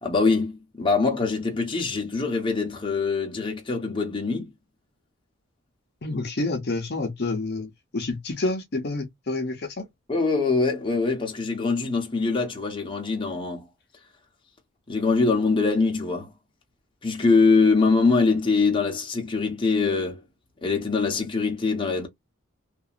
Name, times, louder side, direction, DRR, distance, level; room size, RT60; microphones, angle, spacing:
voice 1, 0.0-4.5 10.1-13.7 14.9-16.3 17.0-20.2 20.6-22.1, left 4 dB, 25° left, 1.0 m, -23 dB
voice 2, 6.0-9.9, left 2 dB, 55° left, 0.8 m, -29 dB
2.8 x 2.6 x 2.4 m
head